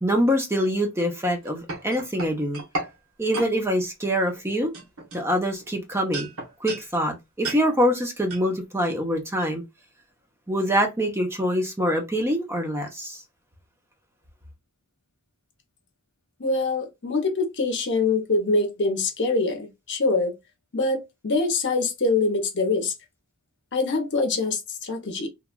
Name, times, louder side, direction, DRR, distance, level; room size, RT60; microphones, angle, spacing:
voice 1, 0.0-2.6 3.2-4.7 5.1-6.3 6.6-9.6 10.5-13.2, equal, 10° right, 0.6 m, -24 dB
sound 1, 1.3-2.9 3.3-3.5 4.2-4.4 4.7-5.7 6.1-6.9 7.4-7.6 8.3-8.5, right 2 dB, 65° right, 1.1 m, -33 dB
voice 2, 16.4-20.3 20.7-22.9 23.7-25.3, left 3 dB, 55° left, 0.8 m, -24 dB
2.9 x 2.3 x 2.2 m
head